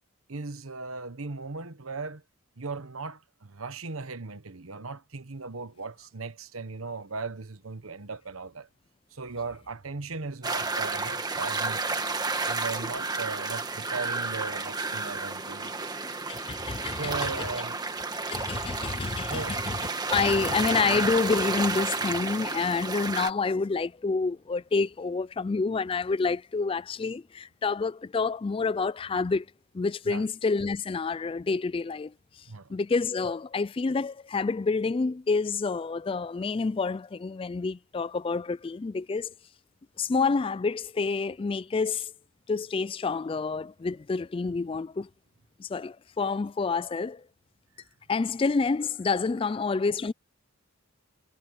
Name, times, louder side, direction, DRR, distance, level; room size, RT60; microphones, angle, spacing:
voice 1, 0.3-2.2 2.6-8.7 9.1-12.0 12.4-15.9 16.8-17.8 19.3-19.6 20.3-20.6 30.0-30.3 32.5-32.8, right 4 dB, 80° right, 1.3 m, -37 dB
sound 1, 10.4-23.3, right 3 dB, 20° right, 1.6 m, -31 dB
voice 2, 16.3-17.5 18.3-19.8 20.1-29.5 29.7-32.4 32.7-39.3 40.0-42.1 42.5-45.1 45.6-47.2 48.1-50.1, left 4 dB, 25° left, 0.3 m, -28 dB
head